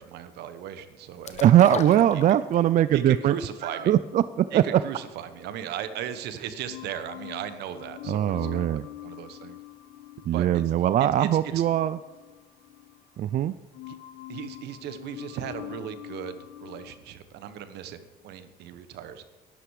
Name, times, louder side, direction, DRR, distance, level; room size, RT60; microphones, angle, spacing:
voice 1, 0.0-2.0 2.9-3.9 4.5-9.6 10.3-10.6 11.2-11.6 13.9-14.0 14.3-19.2, right 9 dB, 80° right, 11 dB, 1.2 m, -37 dB
sound 1, 1.2-2.8 3.2-3.3, left 6 dB, 40° left, 1.1 m, -36 dB
voice 2, 1.4-3.3 3.6-4.8 8.1-8.8 10.3-12.0 13.2-13.5, right 11 dB, 50° right, 15 dB, 0.4 m, -21 dB
sound 2, 2.9-6.2 6.6-13.4 13.7-17.0, left 16 dB, 85° left, 1.2 m, -45 dB
12.0 x 11.5 x 4.9 m, 1.2 s
cardioid pair, 110°, 17 cm